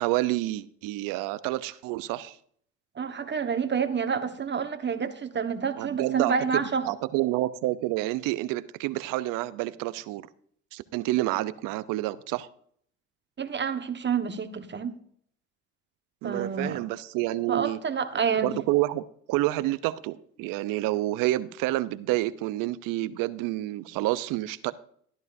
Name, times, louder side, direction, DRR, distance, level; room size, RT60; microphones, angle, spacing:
voice 1, 0.0-2.4 5.8-10.2 10.7-12.5 16.2-17.8 18.4-19.0 19.3-24.7, right 17 dB, 70° right, 0.8 m, -28 dB
voice 2, 2.9-6.9 13.4-14.9 16.2-16.8 17.5-18.5, right 6 dB, 30° right, 1.5 m, -28 dB
13.5 x 12.0 x 2.7 m
supercardioid pair, 70°, 33 cm